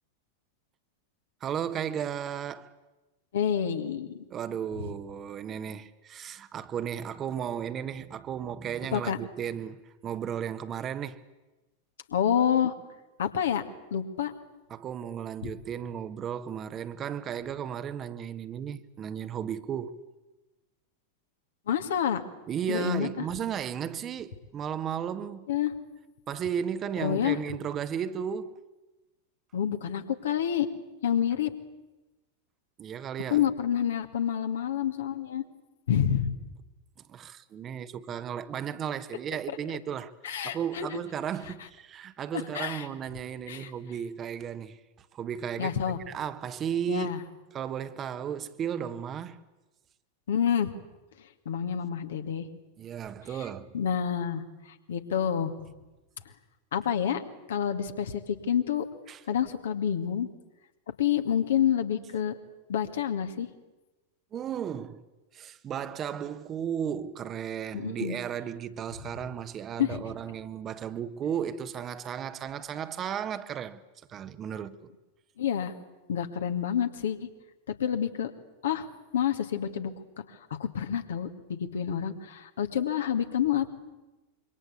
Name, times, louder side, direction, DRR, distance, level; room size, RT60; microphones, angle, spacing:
voice 1, 1.4-2.7 4.3-11.2 14.7-20.0 22.5-25.5 26.3-28.6 32.8-33.4 37.1-45.8 46.1-47.1 47.5-49.4 52.8-53.7 59.1-59.2 64.3-65.0 65.3-73.8 74.1-74.9, right 8 dB, 30° right, 1.3 m, -34 dB
voice 2, 3.3-4.2 8.9-9.2 12.1-12.7 13.2-13.6 13.9-14.3 15.4-15.5 21.7-22.2 22.7-23.3 25.5-25.7 27.0-27.4 29.5-30.7 31.0-31.5 33.3-35.4 35.9-36.3 40.2-41.0 42.3-42.9 43.5-43.7 45.6-46.0 46.9-47.2 50.3-50.7 51.5-52.5 53.7-55.5 56.7-57.2 57.5-58.9 59.3-60.3 61.0-62.4 62.7-63.5 67.7-68.2 69.8-70.0 75.4-75.7 76.1-77.2 77.7-78.3 78.6-78.9 79.1-79.9 80.3-83.8, left 9 dB, 60° left, 2.1 m, -28 dB
26.0 x 24.0 x 8.2 m
figure-of-eight pair, 90°, 0 cm